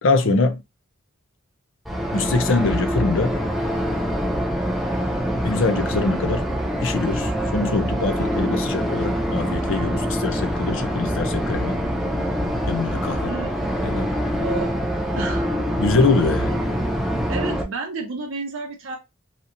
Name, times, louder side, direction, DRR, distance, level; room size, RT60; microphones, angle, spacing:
voice 1, 0.0-0.6 2.1-3.4 5.4-6.4 6.8-11.8 12.7-13.3 13.8-14.1 15.8-16.6, left 3 dB, 65° left, 0.5 m, -23 dB
sound 1, 1.9-17.6, equal, ahead, 0.3 m, -24 dB
voice 2, 13.3-13.8 14.4-14.7 15.2-15.5 17.3-19.0, right 3 dB, 70° right, 0.6 m, -31 dB
2.8 x 2.7 x 2.5 m
head